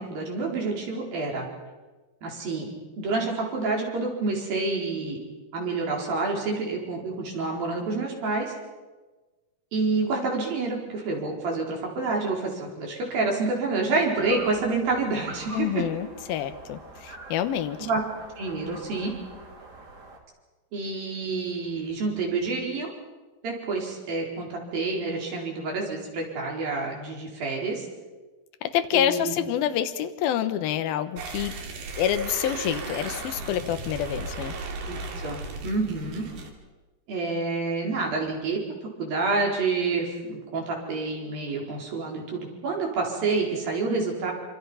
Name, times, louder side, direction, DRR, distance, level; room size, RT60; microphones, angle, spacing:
voice 1, 0.0-1.5 2.2-2.7 3.0-5.2 5.5-8.5 9.7-15.8 17.8-18.0 18.4-19.1 20.7-22.9 23.4-27.9 28.9-29.3 34.9-36.3 37.1-38.6 39.0-44.3, right 3 dB, 65° right, -1 dB, 6.2 m, -28 dB
sound 1, 14.1-20.2, right 2 dB, 30° right, 3.0 m, -43 dB
voice 2, 15.5-17.9 28.6-31.5 32.0-34.5, left 10 dB, 75° left, 9 dB, 2.9 m, -27 dB
sound 2, 31.2-36.5, right 3 dB, 85° right, 4.5 m, -36 dB
27.0 x 25.0 x 5.7 m, 1.2 s
omnidirectional pair, 4.4 m